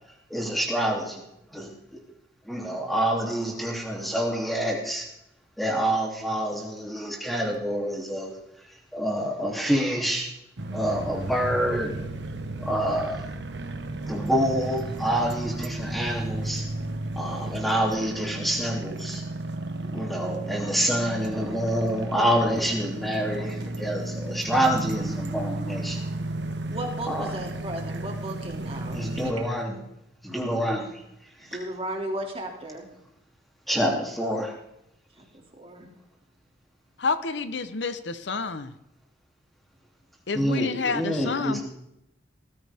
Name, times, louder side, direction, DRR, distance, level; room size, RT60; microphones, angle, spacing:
voice 1, 0.3-1.2 1.5-1.7 2.4-5.1 5.6-8.3 8.9-10.3 10.7-11.9 12.6-13.2 14.0-16.7 17.1-19.2 19.9-26.0 27.1-27.3 28.9-29.8 30.2-31.0 31.4-31.5 33.7-34.5 40.3-41.6, equal, ahead, 2.9 m, -27 dB
sound 1, 10.6-29.3, right 2 dB, 70° right, 1.2 m, -33 dB
voice 2, 26.7-29.5 31.4-32.9 35.3-35.9, right 1 dB, 30° right, 2.6 m, -35 dB
voice 3, 37.0-38.7 40.3-41.6, left 4 dB, 75° left, 0.9 m, -29 dB
19.5 x 14.0 x 3.6 m
head